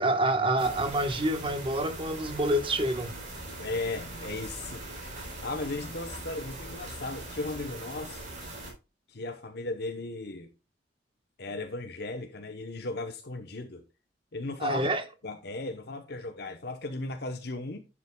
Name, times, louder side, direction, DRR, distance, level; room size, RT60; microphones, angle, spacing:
voice 1, 0.0-3.2 14.6-15.0, right 1 dB, 30° right, 1.2 m, -27 dB
sound 1, 0.6-8.7, right 2 dB, 45° right, 4.1 m, -41 dB
voice 2, 3.6-8.3 9.1-10.5 11.4-13.8 14.3-14.9 15.2-17.8, left 2 dB, 65° left, 0.9 m, -36 dB
11.0 x 7.2 x 2.3 m
head